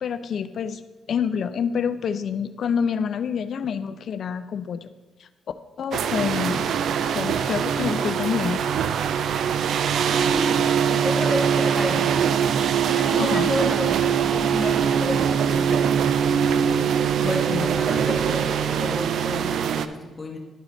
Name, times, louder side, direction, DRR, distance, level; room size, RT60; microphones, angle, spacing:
voice 1, 0.0-0.8 1.1-4.9 5.2-5.3 5.8-8.6 13.2-13.5 17.2-17.7, left 7 dB, 60° left, 12 dB, 0.5 m, -27 dB
sound 1, 5.9-19.9, right 8 dB, 65° right, 0.4 m, -22 dB
voice 2, 9.9-12.2 12.9-16.1 16.7-20.4, left 1 dB, 20° left, 0 dB, 1.7 m, -32 dB
12.0 x 4.8 x 3.9 m, 1.2 s
cardioid pair, 90°, 0 cm